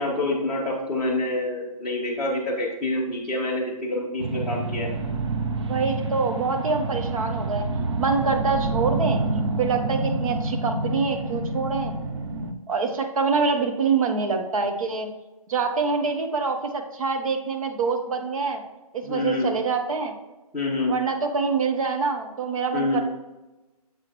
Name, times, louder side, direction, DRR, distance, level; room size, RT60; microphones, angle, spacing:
voice 1, 0.0-4.9 19.0-19.5 20.5-20.9 22.7-23.0, left 2 dB, 5° right, -8 dB, 1.6 m, -26 dB
sound 1, 4.2-12.5, right 2 dB, 45° right, 0.7 m, -28 dB
voice 2, 5.7-7.7 8.0-9.2 9.6-11.9 12.7-15.1 15.5-18.6 18.9-20.1 20.9-23.0, right 4 dB, 60° right, 4 dB, 1.2 m, -25 dB
7.6 x 6.0 x 3.1 m, 1.1 s
hypercardioid pair, 165°, 19 cm